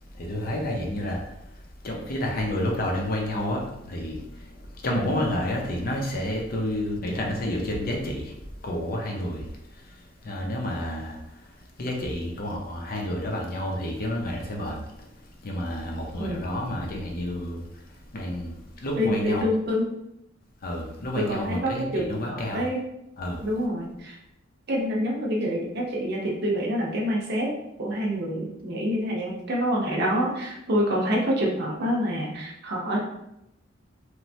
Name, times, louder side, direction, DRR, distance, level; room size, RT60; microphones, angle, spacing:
voice 1, 0.2-1.2 1.8-4.2 4.8-8.3 8.6-9.4 10.2-11.2 11.8-14.8 15.4-17.6 18.1-18.5 18.8-19.4 20.6-22.6 23.2-23.4, left 1 dB, 50° left, 0 dB, 0.6 m, -29 dB
voice 2, 18.9-19.9 21.2-22.8 23.4-24.2 24.7-27.5 27.8-33.0, equal, 55° right, -2 dB, 0.7 m, -27 dB
3.0 x 2.2 x 2.7 m, 0.83 s
head